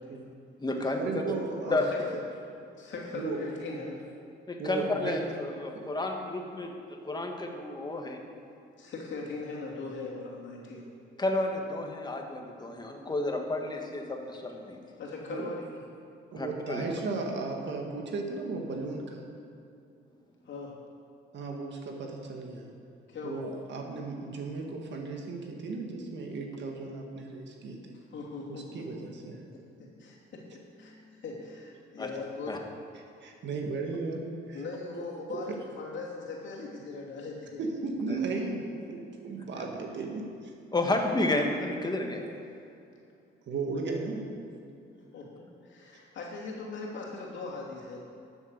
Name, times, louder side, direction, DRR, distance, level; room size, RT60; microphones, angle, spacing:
voice 1, 0.1-0.4 1.0-1.8 2.1-2.2 3.1-3.4 3.7-3.8 4.6-5.2 5.7-5.8 12.6-12.7 15.3-15.5 16.3-19.2 21.3-22.7 23.2-28.0 28.5-29.4 33.0-34.6 34.9-35.0 35.3-35.4 37.6-40.5 43.5-44.3, right 3 dB, 65° right, 2 dB, 1.8 m, -35 dB
voice 2, 0.6-1.2 1.7-1.9 4.5-8.2 11.2-14.8 16.3-16.8 32.0-32.1 32.5-32.6 38.1-38.2 40.7-42.2, left 2 dB, 20° left, 2 dB, 1.7 m, -31 dB
voice 3, 1.7-2.0 2.3-2.4 2.8-4.0 8.8-10.9 15.0-15.8 20.4-20.7 23.1-23.4 28.1-29.1 29.8-32.6 34.5-37.6 39.2-39.3 40.9-41.2 45.1-48.0, left 3 dB, 70° left, -3 dB, 2.8 m, -40 dB
12.0 x 7.2 x 6.6 m, 2.6 s
cardioid pair, 90°, 20 cm